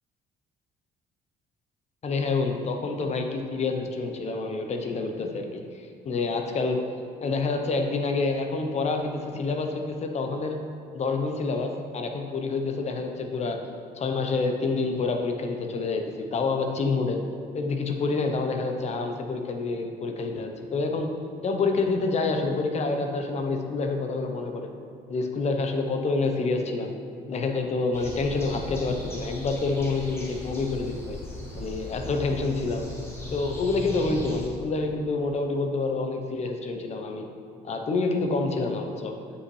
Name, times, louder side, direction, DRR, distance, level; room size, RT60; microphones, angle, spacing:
voice 1, 2.0-6.8 7.2-10.6 10.9-13.6 14.0-17.2 17.5-21.1 21.4-24.7 25.1-26.9 27.3-31.2 31.6-32.8 33.3-37.3 37.6-39.2, left 3 dB, 40° left, 4 dB, 0.8 m, -27 dB
sound 1, 27.9-34.5, left 1 dB, 15° left, 1.4 m, -38 dB
8.6 x 5.6 x 3.2 m, 2.3 s
cardioid pair, 110°, 17 cm